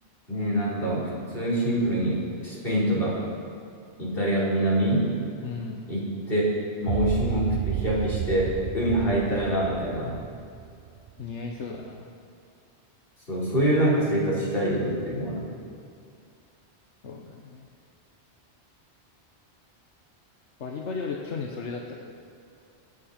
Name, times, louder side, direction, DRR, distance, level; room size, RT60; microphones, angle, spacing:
voice 1, 0.3-3.2 4.0-5.1 5.9-6.4 6.8-10.1 13.3-15.5, right 1 dB, 55° left, -7 dB, 4.8 m, -25 dB
voice 2, 5.4-5.8 11.2-12.1 17.0-17.6 20.6-22.1, left 4 dB, 85° left, 0 dB, 1.4 m, -35 dB
sound 1, 6.9-11.2, right 12 dB, 60° right, 0.6 m, -31 dB
27.5 x 9.6 x 4.4 m, 2.4 s
omnidirectional pair, 1.2 m